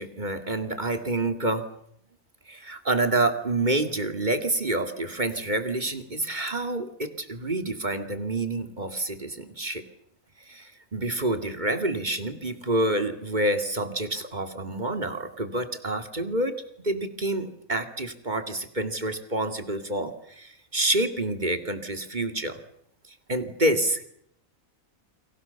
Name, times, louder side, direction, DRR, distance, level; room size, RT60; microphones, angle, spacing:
voice 1, 0.0-1.7 2.5-9.8 10.5-22.6 23.3-24.0, right 2 dB, 30° right, 8 dB, 2.6 m, -28 dB
29.5 x 24.5 x 7.1 m, 0.71 s
omnidirectional pair, 1.4 m